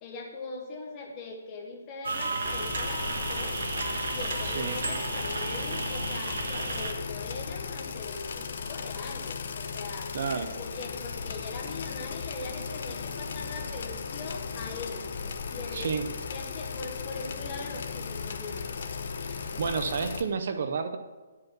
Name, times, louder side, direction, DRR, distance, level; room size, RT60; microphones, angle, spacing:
voice 1, 0.0-3.6 4.1-10.2 10.6-15.1 15.5-15.9 16.3-18.6, left 3 dB, 20° left, -1 dB, 1.2 m, -41 dB
sound 1, 2.0-6.9, right 3 dB, 75° right, 1.5 m, -33 dB
sound 2, 2.4-20.2, left 5 dB, 50° left, 0.8 m, -36 dB
voice 2, 10.1-10.5 15.7-16.0 19.6-21.0, right 5 dB, 45° right, 8 dB, 0.5 m, -30 dB
10.5 x 5.3 x 5.9 m, 1.3 s
hypercardioid pair, 175°, 0 cm